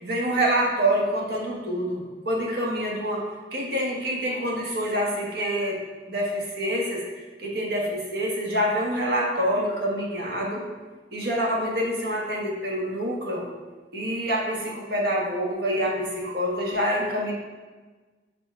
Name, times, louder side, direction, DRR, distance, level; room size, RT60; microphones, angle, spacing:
voice 1, 0.0-3.2 3.5-5.8 6.1-7.0 7.4-10.6 11.1-13.4 13.9-17.3, equal, 65° right, -2 dB, 1.5 m, -26 dB
5.9 x 4.7 x 4.5 m, 1.3 s
head